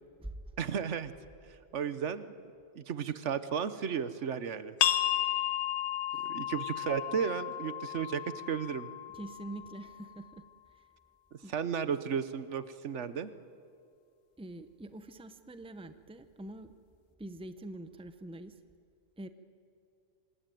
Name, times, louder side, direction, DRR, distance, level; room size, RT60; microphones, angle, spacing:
voice 1, 0.6-1.1 1.5-2.3 2.8-4.7 6.1-8.9 11.3-13.3, right 7 dB, 70° right, 13 dB, 1.2 m, -34 dB
sound 1, 4.8-10.2, left 11 dB, 65° left, 1.1 m, -33 dB
voice 2, 9.1-10.4 10.7-10.8 11.4-11.5 14.4-16.7 17.2-18.5 19.2-19.3, right 1 dB, 5° right, 10 dB, 0.8 m, -45 dB
25.5 x 20.0 x 9.2 m, 2.3 s
omnidirectional pair, 1.3 m